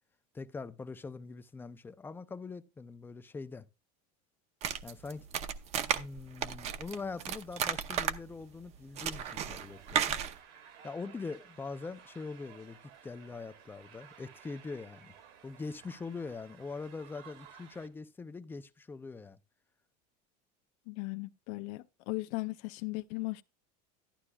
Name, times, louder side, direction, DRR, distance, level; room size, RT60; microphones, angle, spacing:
voice 1, 0.3-3.7 4.8-5.3 5.8-10.2 10.8-15.1 15.4-19.4, left 4 dB, 10° left, 0.5 m, -43 dB
sound 1, 4.6-10.4, right 9 dB, 35° right, 0.7 m, -34 dB
sound 2, 9.4-17.9, right 8 dB, 60° right, 2.0 m, -56 dB
voice 2, 20.9-23.4, left 24 dB, 60° left, 0.5 m, -37 dB
11.5 x 11.0 x 2.3 m
supercardioid pair, 150°, 19 cm